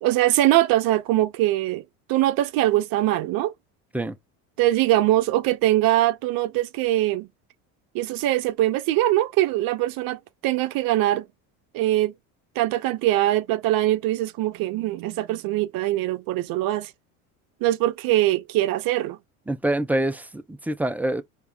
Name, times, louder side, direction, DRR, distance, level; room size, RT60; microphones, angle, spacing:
voice 1, 0.0-1.8 2.1-3.5 4.6-7.3 7.9-11.2 11.7-12.1 12.6-16.9 17.6-19.2, right 15 dB, 55° right, 0.7 m, -22 dB
voice 2, 19.5-21.2, right 1 dB, 5° right, 0.6 m, -25 dB
4.7 x 2.8 x 3.4 m
supercardioid pair, 90°, 42 cm